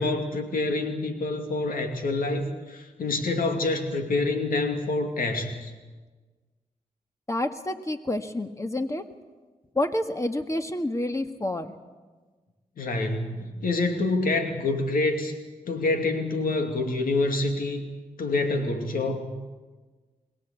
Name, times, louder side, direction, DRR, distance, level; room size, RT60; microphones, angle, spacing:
voice 1, 0.0-5.7 12.8-15.3 15.7-17.8 18.2-19.3, left 2 dB, 80° left, 5 dB, 2.7 m, -27 dB
voice 2, 7.3-9.0 9.8-11.7, left 1 dB, 20° left, 7 dB, 1.8 m, -28 dB
22.5 x 18.0 x 8.4 m, 1.3 s
cardioid pair, 60°, 14 cm